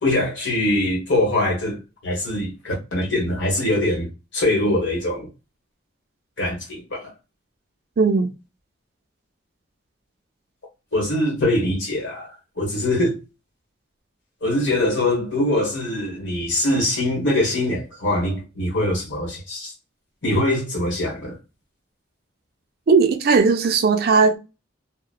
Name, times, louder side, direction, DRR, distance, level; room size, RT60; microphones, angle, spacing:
voice 1, 0.0-5.3 6.4-7.1 10.9-13.2 14.4-19.7 20.2-21.4, left 1 dB, 65° left, 1.3 m, -23 dB
voice 2, 8.0-8.3 22.9-24.4, right 4 dB, 50° right, 0.4 m, -17 dB
2.9 x 2.1 x 2.3 m
head